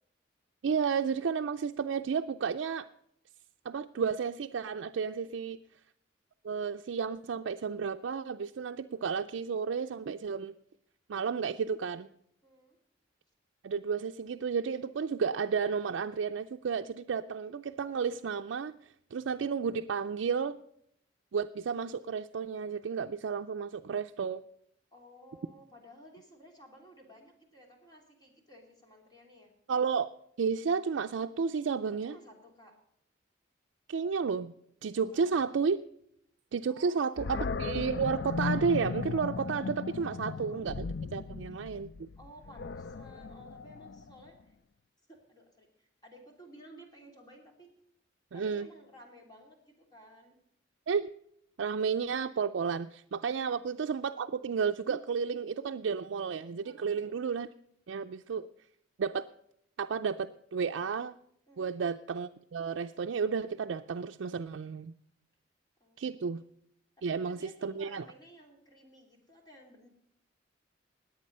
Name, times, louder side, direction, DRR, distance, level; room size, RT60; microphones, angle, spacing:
voice 1, 0.6-2.9 3.7-5.6 6.4-10.5 11.1-12.1 13.6-18.7 19.1-20.6 21.3-24.4 29.7-30.1 30.4-32.2 33.9-34.5 34.8-35.8 36.5-42.1 48.3-48.7 50.9-51.1 51.6-57.5 57.9-58.5 59.0-59.3 59.8-61.1 61.6-64.9 66.0-66.4 67.0-68.0, right 6 dB, 85° right, 6 dB, 0.4 m, -32 dB
voice 2, 12.4-12.8 24.9-29.5 32.0-32.8 35.1-35.5 36.7-37.4 40.1-40.7 42.2-44.5 45.1-47.7 48.3-50.4 53.2-53.4 56.6-57.2 61.5-61.8 65.8-66.5 67.0-69.9, equal, 20° left, 0 dB, 3.1 m, -55 dB
Animal, 37.2-44.3, left 4 dB, 65° left, 0.4 m, -37 dB
19.0 x 8.6 x 5.4 m, 0.72 s
head